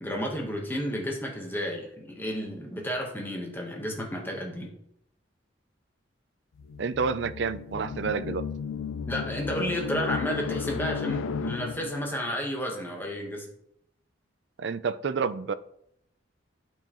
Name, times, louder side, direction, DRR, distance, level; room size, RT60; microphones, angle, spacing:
voice 1, 0.0-4.7 9.1-13.5, equal, 10° left, 0 dB, 1.1 m, -32 dB
sound 1, 6.6-12.1, left 6 dB, 85° left, 0.3 m, -34 dB
voice 2, 6.8-8.5 14.6-15.5, right 5 dB, 60° right, 14 dB, 0.4 m, -29 dB
12.0 x 4.6 x 3.0 m, 0.73 s
head